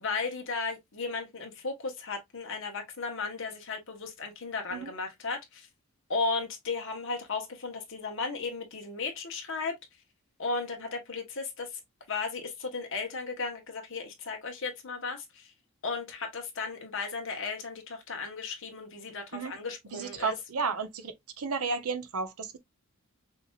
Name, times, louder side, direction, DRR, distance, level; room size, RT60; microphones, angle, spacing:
voice 1, 0.0-5.7 6.1-9.8 10.4-11.8 12.1-15.5 15.8-20.3, left 4 dB, 60° left, 1.3 m, -35 dB
voice 2, 19.9-22.6, right 4 dB, 75° right, 0.8 m, -33 dB
5.7 x 2.7 x 2.4 m
head